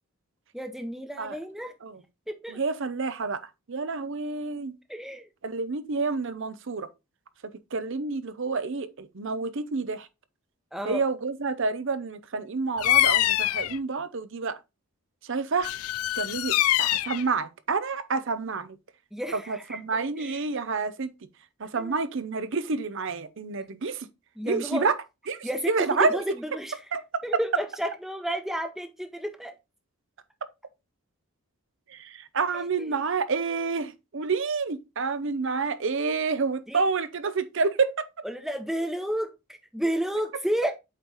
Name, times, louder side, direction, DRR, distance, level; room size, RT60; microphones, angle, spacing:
voice 1, 0.5-1.7 2.3-2.6 4.9-5.3 10.7-11.0 19.1-19.8 20.2-20.4 21.7-22.0 24.4-24.9 25.4-26.7 27.2-29.5 32.5-32.9 36.7-36.8 38.2-40.7, equal, ahead, 0.8 m, -31 dB
voice 2, 2.5-3.4 3.7-4.8 5.4-6.9 7.7-10.1 10.8-14.6 15.2-15.7 16.2-18.8 19.3-21.1 21.6-24.1 24.5-25.0 25.3-26.2 26.9-27.0 31.9-38.0, right 4 dB, 55° right, 0.7 m, -28 dB
Bird vocalization bird call bird song, 12.8-13.8 15.6-17.2, left 14 dB, 80° left, 0.3 m, -24 dB
8.2 x 3.2 x 4.0 m
head